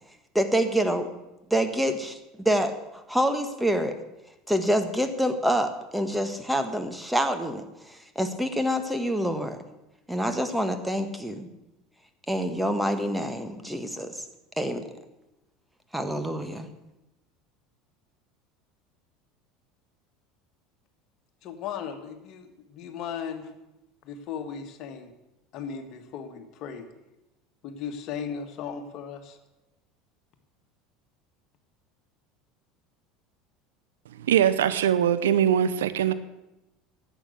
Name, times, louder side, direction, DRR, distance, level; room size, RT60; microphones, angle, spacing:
voice 1, 0.3-1.1 1.5-2.8 3.1-4.0 4.5-9.6 10.1-11.5 12.3-14.2 14.6-14.8 15.9-16.7, equal, 5° right, 1.6 m, -26 dB
voice 2, 21.4-23.5 24.0-25.1 25.5-26.9 27.6-29.4, left 7 dB, 50° left, 1.7 m, -36 dB
voice 3, 34.2-36.1, right 9 dB, 75° right, 0.7 m, -22 dB
11.5 x 8.3 x 8.3 m
hypercardioid pair, 75°, 0 cm